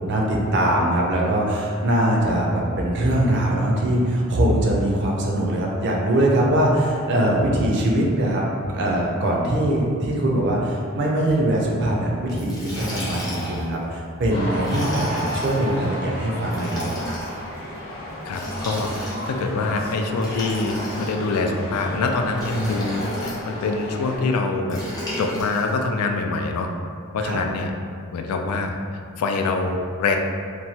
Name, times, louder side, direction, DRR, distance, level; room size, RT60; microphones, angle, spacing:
voice 1, 0.0-8.4 8.7-16.8 22.5-22.8 27.2-27.4, right 1 dB, 50° right, -2 dB, 0.4 m, -22 dB
Liquid, 12.3-13.7 14.6-15.6 16.5-17.4 18.3-19.4 20.2-21.4 22.3-23.4 24.7-25.7, equal, 15° left, 0.5 m, -33 dB
sound 1, 14.3-24.2, equal, 45° left, 0.8 m, -33 dB
voice 2, 18.2-24.8 25.2-26.7 27.1-27.7 28.1-28.8 29.2-30.2, left 3 dB, 90° left, 4 dB, 0.3 m, -25 dB
3.0 x 2.2 x 2.7 m, 2.2 s
head